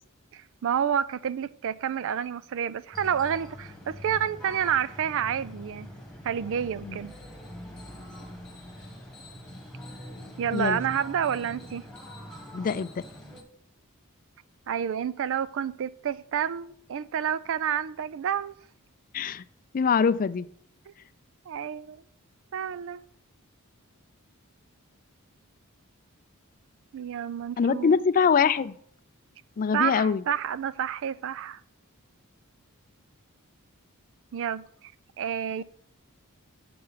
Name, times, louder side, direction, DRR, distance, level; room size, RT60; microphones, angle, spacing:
voice 1, 0.3-5.9 6.2-7.1 10.4-11.9 14.7-18.5 20.9-21.0 21.5-22.0 22.5-23.1 26.9-27.9 29.7-31.6 34.3-34.9 35.2-35.6, right 8 dB, 60° right, 0.4 m, -29 dB
sound 1, 2.9-13.4, equal, 5° left, 1.5 m, -43 dB
voice 2, 12.5-13.0 19.1-19.4 19.7-20.5 27.6-28.8 29.6-30.2, left 6 dB, 40° left, 0.4 m, -23 dB
7.7 x 6.8 x 5.7 m
head